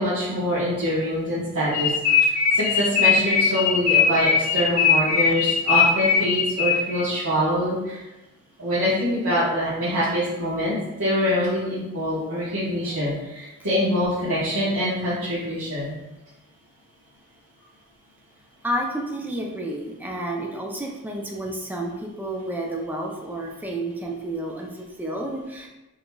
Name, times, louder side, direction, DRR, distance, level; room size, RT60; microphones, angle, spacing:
voice 1, 0.0-2.3 2.5-8.0 8.6-15.9, equal, 90° right, -11 dB, 1.2 m, -24 dB
sound 1, 1.7-7.0, left 6 dB, 70° left, 0.5 m, -20 dB
voice 2, 18.6-25.7, right 1 dB, 10° right, 0 dB, 0.5 m, -30 dB
4.9 x 3.8 x 2.3 m, 1.0 s
head